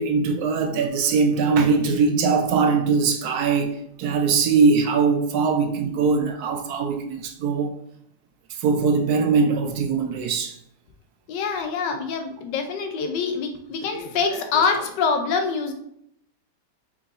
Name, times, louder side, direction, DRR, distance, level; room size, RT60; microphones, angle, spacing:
voice 1, 0.0-7.7 8.6-10.5, right 5 dB, 70° right, 1.0 m, -21 dB
voice 2, 11.3-15.7, left 5 dB, 85° left, 1.4 m, -25 dB
4.6 x 3.7 x 2.6 m
omnidirectional pair, 1.8 m